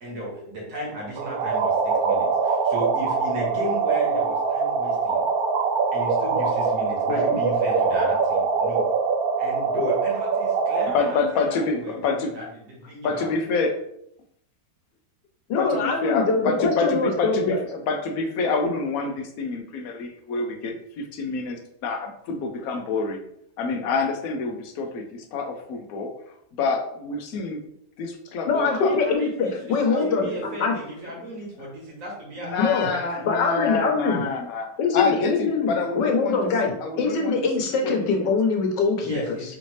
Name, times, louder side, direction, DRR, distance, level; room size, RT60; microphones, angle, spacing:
voice 1, 0.0-5.2 5.9-8.8 9.4-13.3 28.5-33.3 39.0-39.6, equal, 50° right, -3 dB, 1.8 m, -35 dB
sound 1, 1.2-11.1, right 5 dB, 70° right, 1.0 m, -23 dB
voice 2, 10.9-12.4 13.0-13.7 15.6-23.2 23.6-26.1 26.5-27.6 28.0-29.0 29.6-30.6 32.4-37.4 37.8-38.3, left 4 dB, 65° left, 5 dB, 1.0 m, -27 dB
voice 3, 15.5-17.6 28.5-30.3 30.6-30.7 32.6-32.9 33.3-34.2 34.8-39.2, left 4 dB, 85° left, 2 dB, 1.5 m, -23 dB
5.0 x 2.7 x 3.1 m, 0.72 s
omnidirectional pair, 1.8 m